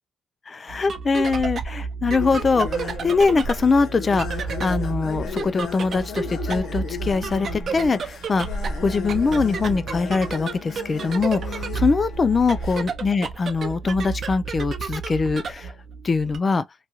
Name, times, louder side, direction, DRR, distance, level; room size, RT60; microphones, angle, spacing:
voice 1, 0.5-8.5 8.8-15.7 16.0-16.6, left 4 dB, 35° left, 0.4 m, -23 dB
sound 1, 0.7-16.4, right 5 dB, 55° right, 0.6 m, -31 dB
sound 2, 2.2-12.9, left 5 dB, 70° left, 0.9 m, -35 dB
2.9 x 2.3 x 2.7 m
cardioid pair, 90°, 0 cm